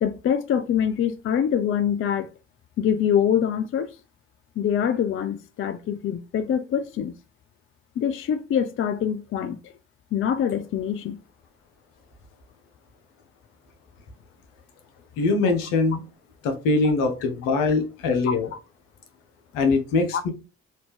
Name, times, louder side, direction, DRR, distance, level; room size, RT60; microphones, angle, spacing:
voice 1, 0.0-2.3 2.8-4.0 4.6-7.1 8.0-9.6 10.1-11.2 20.1-20.2, left 8 dB, 40° left, 0.5 m, -24 dB
voice 2, 15.2-16.0 16.4-18.5 19.5-20.3, left 3 dB, 70° left, 1.0 m, -22 dB
4.3 x 2.7 x 3.4 m
figure-of-eight pair, 40°, 34 cm